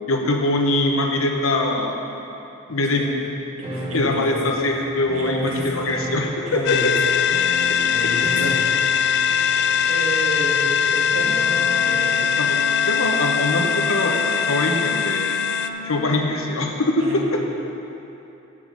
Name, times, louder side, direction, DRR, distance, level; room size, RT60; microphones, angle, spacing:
voice 1, 0.1-1.9 2.7-3.1 3.9-6.9 12.4-12.6 12.9-15.4 15.8-17.4, left 2 dB, 75° left, 2 dB, 1.0 m, -22 dB
voice 2, 2.7-3.1 3.6-4.5 5.1-6.0 6.5-8.7 9.1-9.2 9.9-12.4 17.0-17.2, right 1 dB, 75° right, -4 dB, 1.8 m, -32 dB
sound 1, 3.6-12.0, equal, 25° right, 1.1 m, -35 dB
sound 2, 6.7-15.7, left 7 dB, 55° left, 0.3 m, -21 dB
Wind instrument woodwind instrument, 11.2-16.1, left 3 dB, 30° left, 0.7 m, -33 dB
7.2 x 7.2 x 6.3 m, 2.9 s
head